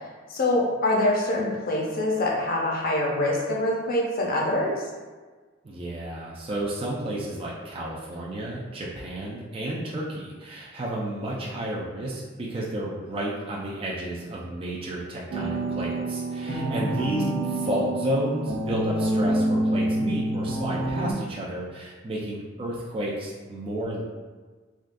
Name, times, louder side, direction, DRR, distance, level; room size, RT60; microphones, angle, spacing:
voice 1, 0.3-4.8 16.5-17.0, left 1 dB, 50° left, -2 dB, 0.6 m, -25 dB
voice 2, 5.6-24.0, right 1 dB, 30° right, -5 dB, 0.4 m, -31 dB
sound 1, 15.3-21.1, right 1 dB, 85° right, 0.6 m, -27 dB
3.5 x 2.3 x 2.5 m, 1.4 s
head